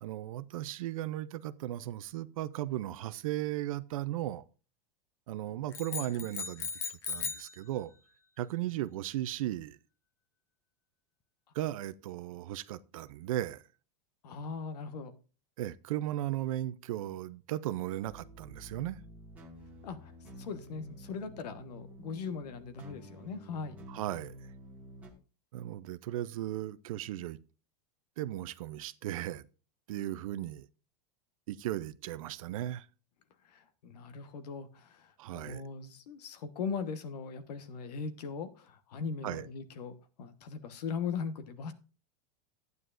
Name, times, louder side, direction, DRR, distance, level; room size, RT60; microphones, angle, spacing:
voice 1, 0.0-4.4 5.3-6.7 7.1-7.9 8.4-9.8 11.5-13.6 15.6-19.0 23.9-24.3 25.5-27.4 28.2-29.4 29.9-30.7 31.5-32.9 35.2-35.6 39.2-39.5, right 13 dB, 60° right, 0.5 m, -36 dB
sound 1, 5.7-7.6, left 6 dB, 15° left, 0.4 m, -37 dB
voice 2, 14.2-15.1 19.8-20.1 20.4-23.9 33.4-41.7, left 5 dB, 90° left, 1.3 m, -40 dB
sound 2, 18.0-25.1, right 1 dB, 5° right, 1.6 m, -50 dB
12.5 x 9.4 x 2.5 m
supercardioid pair, 175°, 20 cm